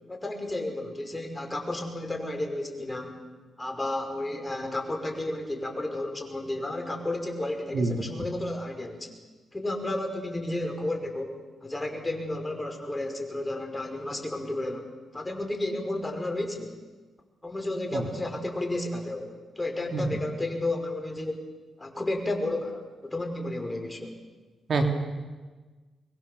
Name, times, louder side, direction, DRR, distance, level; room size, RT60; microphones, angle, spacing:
voice 1, 0.1-3.1 3.6-9.1 9.5-16.7 17.4-19.3 19.6-21.4 21.8-24.1, left 1 dB, 20° left, 4 dB, 5.3 m, -32 dB
voice 2, 7.7-8.0 17.9-18.0 19.9-20.0 24.7-24.8, right 3 dB, 60° right, 4 dB, 3.1 m, -26 dB
24.5 x 22.0 x 7.0 m, 1.3 s
cardioid pair, 60°, 0 cm